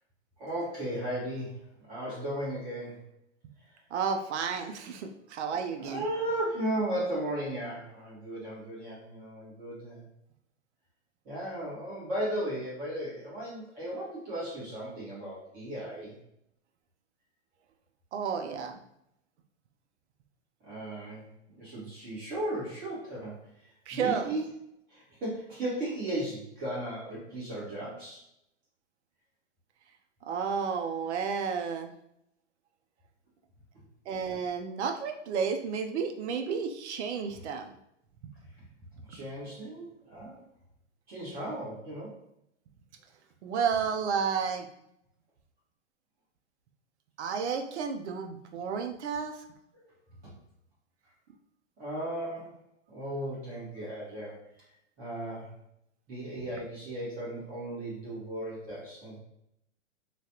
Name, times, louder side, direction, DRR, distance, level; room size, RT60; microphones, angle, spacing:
voice 1, 0.4-1.6 1.9-3.0 5.8-10.1 11.2-16.2 20.6-23.4 23.9-24.5 24.9-28.2 39.1-40.4 41.1-42.1 49.7-49.8 51.8-52.5 52.9-54.3 55.0-55.5 56.1-59.2, right 1 dB, 25° right, -7 dB, 1.4 m, -36 dB
voice 2, 3.9-6.0 18.1-18.8 23.9-24.3 30.3-31.9 34.1-37.7 43.4-44.7 47.2-49.3, right 6 dB, 65° right, 5 dB, 0.6 m, -31 dB
3.1 x 2.4 x 2.8 m, 0.79 s
hypercardioid pair, 145°, 37 cm